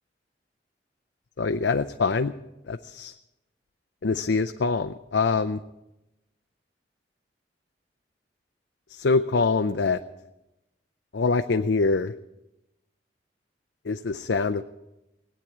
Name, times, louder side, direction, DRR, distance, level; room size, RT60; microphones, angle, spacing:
voice 1, 1.4-2.3 2.7-3.1 4.0-5.6 8.9-10.0 11.1-12.1 13.9-14.6, left 4 dB, 75° left, 8 dB, 0.6 m, -24 dB
18.0 x 9.1 x 8.5 m, 0.93 s
head